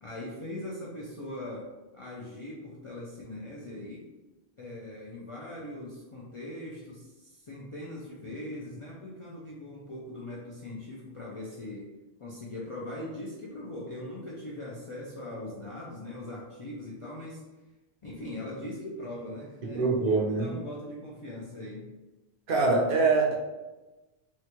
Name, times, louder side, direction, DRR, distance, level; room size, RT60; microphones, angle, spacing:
voice 1, 0.0-1.7 1.9-4.1 4.6-11.9 12.2-17.4 18.0-21.9, left 1 dB, 50° left, -5 dB, 0.4 m, -40 dB
voice 2, 19.6-20.5 22.5-23.3, right 3 dB, 60° right, 0 dB, 0.7 m, -24 dB
3.6 x 2.2 x 2.9 m, 1.1 s
omnidirectional pair, 1.1 m